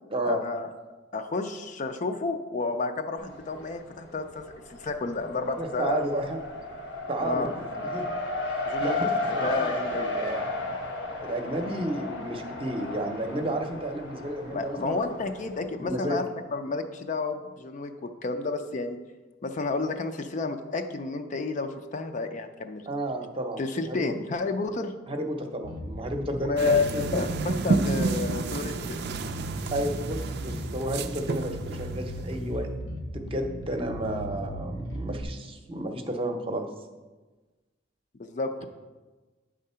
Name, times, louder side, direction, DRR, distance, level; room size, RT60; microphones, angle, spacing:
voice 1, 0.2-0.7 1.1-4.4 4.7-6.0 7.2-7.5 8.7-9.0 9.3-10.1 14.5-16.2 16.5-19.0 19.4-22.8 23.6-24.9 26.5-26.8 27.1-29.0 38.2-38.6, left 3 dB, 40° left, 7 dB, 0.5 m, -30 dB
Race car auto racing, 3.2-3.9 4.2-15.6, left 2 dB, 90° left, 1.3 m, -34 dB
voice 2, 5.6-6.4 7.1-8.1 8.4-10.5 11.2-15.0 15.8-16.2 22.9-24.1 25.1-27.2 29.7-32.7 33.1-36.7, right 1 dB, 30° right, 4 dB, 0.7 m, -32 dB
Bass guitar, 25.6-35.2, right 1 dB, 70° left, 1.0 m, -36 dB
sound 1, 26.6-32.7, right 3 dB, 60° right, 0.4 m, -31 dB
9.0 x 3.7 x 5.5 m, 1.2 s
head